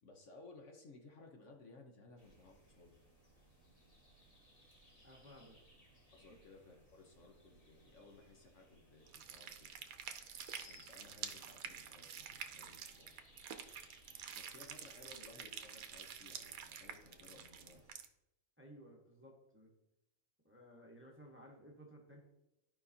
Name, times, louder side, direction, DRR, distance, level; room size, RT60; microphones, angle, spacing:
voice 1, 0.0-2.9 6.1-9.7 10.6-13.2 14.4-18.0, left 3 dB, 60° left, 2 dB, 1.2 m, -59 dB
sound 1, 2.2-17.9, right 1 dB, 25° left, 1.6 m, -66 dB
sound 2, 4.7-5.8 8.8-8.9 10.0-11.3, left 3 dB, 75° left, 2.3 m, -64 dB
voice 2, 5.0-5.6 18.6-19.7 20.4-22.2, equal, 10° right, -1 dB, 1.1 m, -57 dB
sound 3, 9.1-18.1, right 8 dB, 75° right, 1.1 m, -49 dB
13.5 x 5.1 x 2.7 m, 0.91 s
omnidirectional pair, 1.5 m